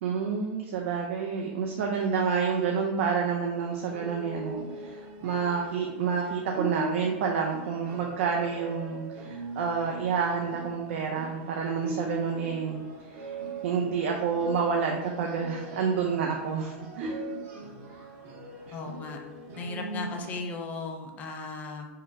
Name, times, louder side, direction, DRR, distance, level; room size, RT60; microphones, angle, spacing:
voice 1, 0.0-13.3 13.6-17.2 18.7-18.8, right 6 dB, 70° right, 1 dB, 0.6 m, -29 dB
sound 1, 3.5-20.4, right 1 dB, 35° right, 0.9 m, -40 dB
voice 2, 18.7-19.2 19.6-21.9, left 3 dB, 20° left, 3 dB, 0.5 m, -36 dB
4.6 x 2.1 x 4.6 m, 1.1 s
supercardioid pair, 160°, 7 cm